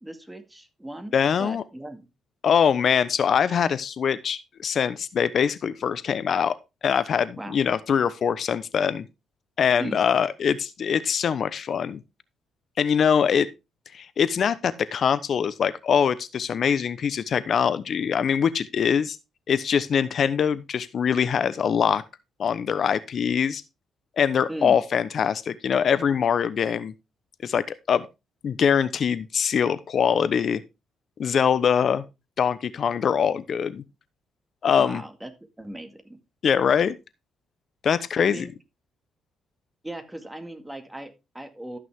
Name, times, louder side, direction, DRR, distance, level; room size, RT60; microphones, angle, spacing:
voice 1, 0.0-1.1 1.4-2.1 7.4-7.6 9.8-10.0 24.5-24.8 34.8-35.3 35.6-36.2 38.2-38.5 39.8-41.8, right 1 dB, 10° right, 2.0 m, -37 dB
voice 2, 1.1-1.6 2.4-6.5 6.8-9.1 9.6-12.0 12.8-13.5 13.9-19.2 19.5-22.0 22.4-23.6 24.2-26.9 27.4-28.1 28.4-30.6 31.2-32.0 32.4-33.8 34.6-35.0 36.4-37.0 37.8-38.4, left 7 dB, 55° left, 0.9 m, -23 dB
13.5 x 6.2 x 3.6 m
cardioid pair, 90°, 0 cm